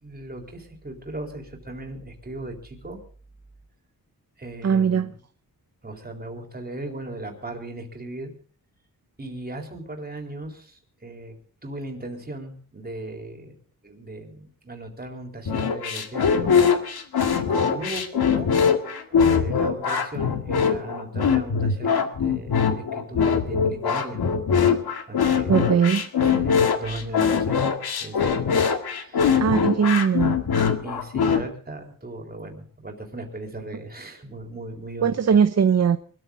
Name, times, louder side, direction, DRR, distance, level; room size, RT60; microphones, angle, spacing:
voice 1, 0.0-3.0 4.4-5.1 5.8-8.3 9.2-11.4 11.6-13.5 13.8-16.5 17.4-18.5 19.1-24.2 24.7-24.8 25.1-25.7 26.3-27.6 28.0-28.2 28.8-29.9 30.8-35.4, right 2 dB, 25° right, 3.9 m, -37 dB
voice 2, 4.6-5.1 25.5-26.0 29.4-30.4 35.0-36.0, right 7 dB, 45° right, 0.7 m, -20 dB
sound 1, 15.4-31.4, left 6 dB, 90° left, 2.0 m, -22 dB
24.0 x 13.5 x 3.9 m
wide cardioid pair, 135°, 37 cm